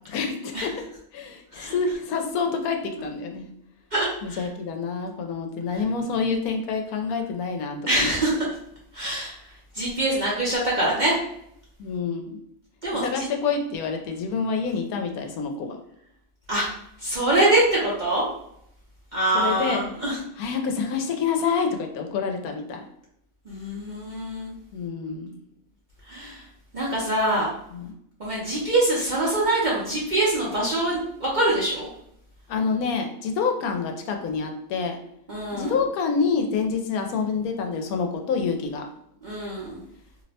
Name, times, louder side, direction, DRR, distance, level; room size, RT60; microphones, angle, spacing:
voice 1, 0.1-0.7 1.1-3.5 4.2-8.1 11.8-12.4 12.9-15.8 19.3-22.8 24.7-25.4 27.7-27.9 32.5-35.0 35.5-38.8, left 5 dB, 85° left, 4 dB, 1.1 m, -27 dB
voice 2, 3.9-4.4 7.9-8.4 8.9-9.3 9.7-11.2 12.8-13.2 16.5-16.7 17.0-18.3 19.1-20.2 23.5-24.5 26.1-26.4 26.7-27.5 28.2-31.9 35.3-35.8 39.2-39.8, right 1 dB, 45° right, -6 dB, 0.6 m, -24 dB
2.8 x 2.1 x 4.0 m, 0.73 s
omnidirectional pair, 1.5 m